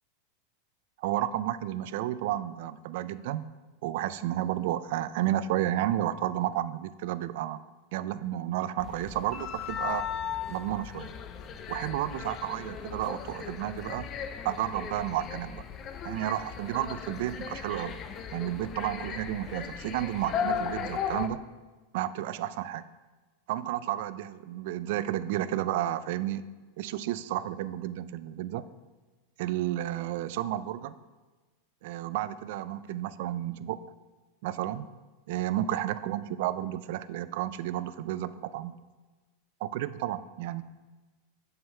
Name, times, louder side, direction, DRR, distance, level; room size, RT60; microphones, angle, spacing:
voice 1, 1.0-3.4 3.8-7.6 7.9-10.1 10.5-11.1 11.7-14.1 14.4-15.6 16.0-18.0 18.3-21.4 21.9-22.8 23.5-26.5 26.8-28.7 29.4-31.0 31.8-33.8 34.4-34.9 35.3-38.8 39.6-40.6, right 13 dB, 65° right, 15 dB, 0.3 m, -32 dB
sound 1, 8.8-21.3, left 7 dB, 35° left, 0.4 m, -37 dB
7.2 x 5.5 x 3.3 m, 1.2 s
supercardioid pair, 130°, 0 cm